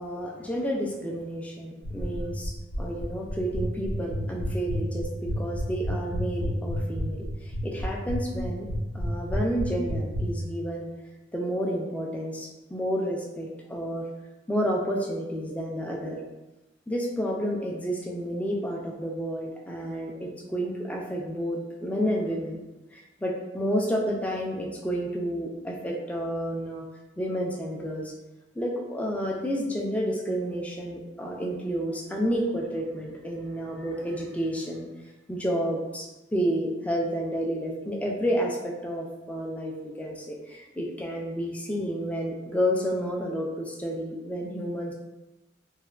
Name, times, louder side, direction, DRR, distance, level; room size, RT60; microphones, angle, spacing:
voice 1, 0.0-2.5 2.8-8.7 8.9-10.9 11.3-14.1 14.5-16.2 16.9-22.6 22.9-26.8 27.2-28.1 28.6-34.9 35.3-36.1 36.3-44.9, equal, 10° left, -1 dB, 0.3 m, -30 dB
sound 1, 1.8-10.2, left 1 dB, 90° left, 0.6 m, -30 dB
3.2 x 2.1 x 2.3 m, 1.1 s
head